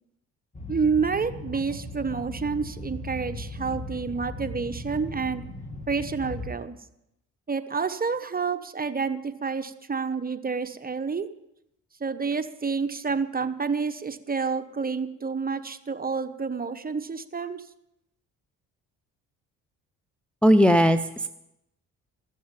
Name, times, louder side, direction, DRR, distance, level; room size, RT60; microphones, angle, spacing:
sound 1, 0.5-6.5, left 1 dB, 20° left, 2.2 m, -37 dB
voice 1, 0.7-5.4 5.9-6.8 7.5-11.3 12.0-17.6, right 5 dB, 25° right, 9 dB, 1.1 m, -29 dB
voice 2, 20.4-21.3, equal, 5° left, 9 dB, 0.7 m, -18 dB
14.0 x 7.3 x 8.9 m, 0.83 s
supercardioid pair, 60°, 36 cm